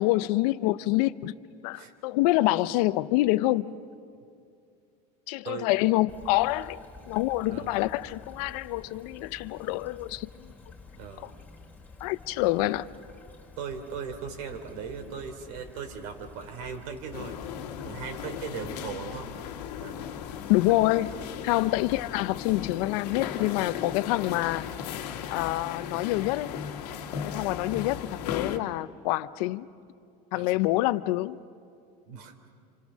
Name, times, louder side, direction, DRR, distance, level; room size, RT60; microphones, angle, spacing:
voice 1, 0.0-1.3 1.6-3.8 5.3-10.5 11.2-11.3 12.0-12.9 20.5-21.1 21.4-24.7 25.3-26.6 27.2-29.7 30.3-31.4, left 18 dB, 70° left, 0.8 m, -26 dB
Stream / Trickle dribble, 6.1-22.8, left 4 dB, 10° left, 3.1 m, -50 dB
voice 2, 11.0-11.3 13.6-17.4 17.8-19.3 19.8-20.1 30.3-30.7 32.1-32.3, right 6 dB, 75° right, 3.6 m, -38 dB
sound 1, 17.1-28.6, left 8 dB, 90° left, 1.7 m, -37 dB
27.5 x 25.5 x 6.4 m
supercardioid pair, 135°, 20 cm